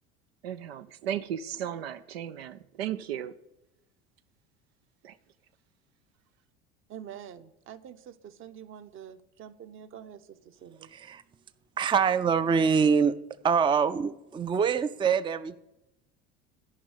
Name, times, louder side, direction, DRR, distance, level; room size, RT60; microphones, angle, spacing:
voice 1, 0.4-3.3 5.0-5.1, right 10 dB, 85° right, 0.5 m, -35 dB
voice 2, 6.9-10.9, right 9 dB, 45° right, 0.9 m, -46 dB
voice 3, 10.9-11.2 11.8-13.1 13.4-15.6, right 6 dB, 15° right, 0.4 m, -24 dB
11.0 x 5.4 x 8.1 m
hypercardioid pair, 80°, 30 cm